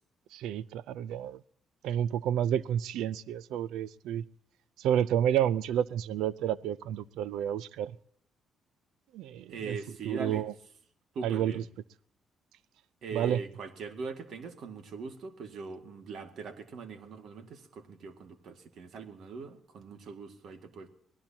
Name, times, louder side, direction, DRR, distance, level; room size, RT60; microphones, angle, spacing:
voice 1, 0.3-1.4 1.8-4.2 4.8-7.9 9.1-9.8 10.0-10.5 11.2-11.6 13.1-13.4, right 10 dB, 90° right, 0.5 m, -30 dB
voice 2, 9.5-10.5 11.1-11.6 13.0-20.9, right 4 dB, 65° right, 2.0 m, -41 dB
24.0 x 18.0 x 2.9 m
cardioid pair, 90°, 0 cm